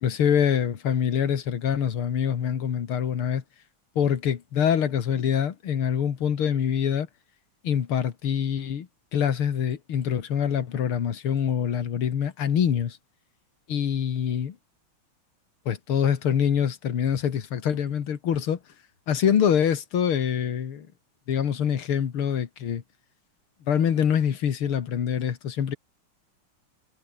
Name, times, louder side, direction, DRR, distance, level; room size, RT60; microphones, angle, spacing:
voice 1, 0.0-3.4 4.0-7.1 7.6-13.0 13.7-14.5 15.7-18.6 19.1-20.9 21.3-22.8 23.7-25.8, left 8 dB, 90° left, 2.6 m, -25 dB
omnidirectional pair, 2.3 m